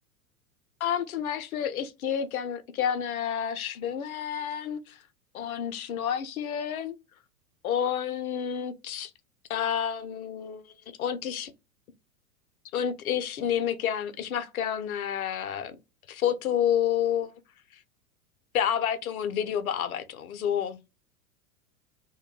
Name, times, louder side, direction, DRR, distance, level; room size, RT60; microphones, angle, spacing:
voice 1, 0.8-5.0 5.3-7.0 7.6-9.1 9.5-10.6 11.0-11.5 12.7-15.8 16.1-17.3 18.5-20.8, left 9 dB, 70° left, 0.5 m, -29 dB
2.1 x 2.1 x 3.0 m
figure-of-eight pair, 95°, 45 cm